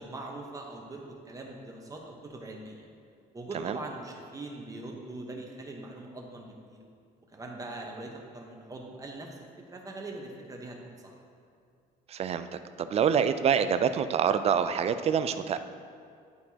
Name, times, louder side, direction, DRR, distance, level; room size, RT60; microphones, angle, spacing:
voice 1, 0.0-2.9 3.3-6.8 7.3-11.1, right 2 dB, 20° right, 0 dB, 1.0 m, -42 dB
voice 2, 12.1-15.6, right 7 dB, 40° right, 11 dB, 0.3 m, -26 dB
11.0 x 4.3 x 2.8 m, 2.3 s
cardioid pair, 110°, 17 cm